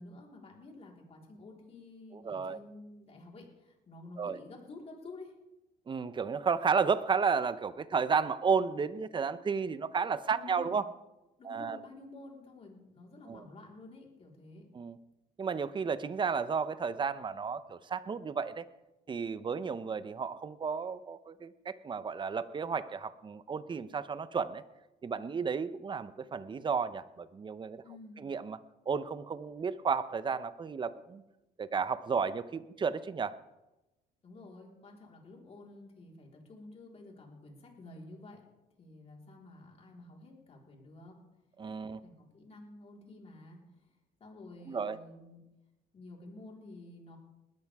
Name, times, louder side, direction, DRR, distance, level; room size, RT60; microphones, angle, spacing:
voice 1, 0.0-5.3 10.3-10.8 11.4-14.7 27.8-28.2 34.2-38.4 38.8-41.2 41.8-45.4 45.9-47.2, left 2 dB, 35° left, -1 dB, 4.2 m, -51 dB
voice 2, 2.1-2.6 4.2-4.4 5.9-10.8 11.4-11.8 13.3-13.5 14.7-15.0 15.4-18.6 19.1-24.6 25.0-27.8 28.2-28.6 28.9-31.2 31.6-33.4 41.6-42.0 44.7-45.0, right 5 dB, 30° right, 14 dB, 0.8 m, -32 dB
20.5 x 13.0 x 3.6 m, 0.99 s
cardioid pair, 110°, 17 cm